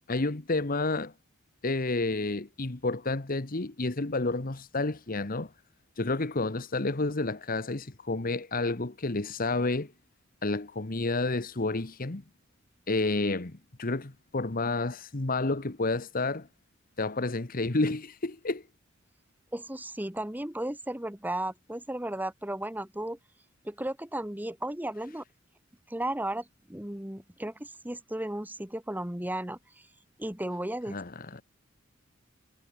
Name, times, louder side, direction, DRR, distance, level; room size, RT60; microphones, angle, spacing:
voice 1, 0.1-1.1 1.6-5.5 6.0-9.9 10.4-12.2 12.9-16.5 17.0-18.6 30.9-31.4, left 2 dB, 45° left, 1.3 m, -30 dB
voice 2, 19.5-23.2 23.6-25.2 25.9-29.6 30.2-30.9, right 1 dB, 10° right, 1.6 m, -34 dB
head